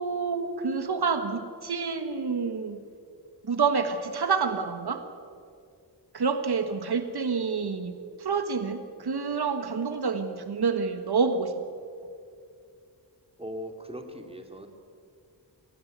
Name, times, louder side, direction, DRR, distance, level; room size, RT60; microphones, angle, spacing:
voice 1, 0.0-2.8 3.4-5.0 6.1-11.5, right 5 dB, 65° right, 8 dB, 1.5 m, -28 dB
voice 2, 13.4-14.7, equal, 15° right, 5 dB, 2.7 m, -39 dB
24.0 x 17.5 x 9.4 m, 2.4 s
wide cardioid pair, 100°, 41 cm